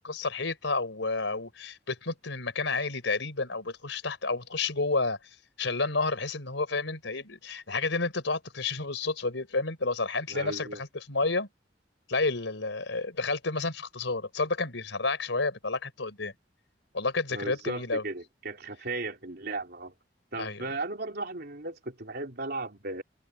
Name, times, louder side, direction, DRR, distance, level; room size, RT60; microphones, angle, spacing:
voice 1, 0.0-5.2 5.6-11.5 12.1-16.3 16.9-18.0 20.4-20.6, left 3 dB, 90° left, 4.0 m, -30 dB
voice 2, 10.3-10.8 17.3-19.9 20.3-23.0, right 2 dB, 60° right, 3.6 m, -36 dB
open air
head